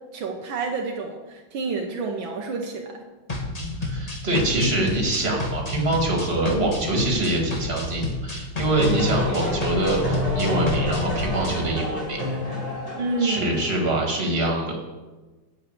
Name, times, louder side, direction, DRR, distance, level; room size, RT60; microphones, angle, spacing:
voice 1, 0.1-2.9 13.0-13.5, right 3 dB, 75° right, 2 dB, 1.7 m, -29 dB
sound 1, 3.3-11.6, left 2 dB, 20° left, 1.2 m, -30 dB
voice 2, 3.8-12.2 13.2-14.8, right 1 dB, 30° right, -1 dB, 2.3 m, -24 dB
sound 2, 8.6-13.8, left 1 dB, 65° left, 4.7 m, -28 dB
9.0 x 6.5 x 8.0 m, 1.2 s
omnidirectional pair, 2.2 m